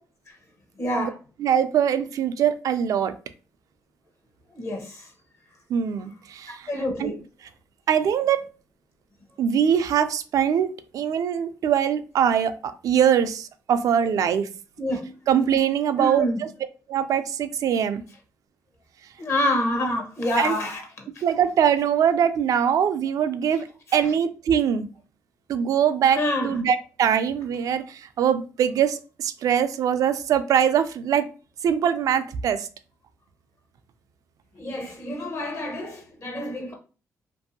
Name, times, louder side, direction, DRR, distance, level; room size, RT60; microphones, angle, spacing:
voice 1, 0.8-1.1 4.6-5.0 6.7-7.2 14.8-15.1 16.0-16.4 19.2-20.8 26.2-26.5 34.6-36.7, left 1 dB, 50° left, 0.8 m, -27 dB
voice 2, 1.4-3.1 5.7-6.7 7.0-7.1 7.9-8.4 9.4-14.5 15.3-16.5 16.9-18.0 20.4-20.6 21.2-24.9 25.5-31.3 31.6-32.7, right 8 dB, 65° right, 0.4 m, -22 dB
2.6 x 2.6 x 2.6 m
cardioid pair, 80°, 6 cm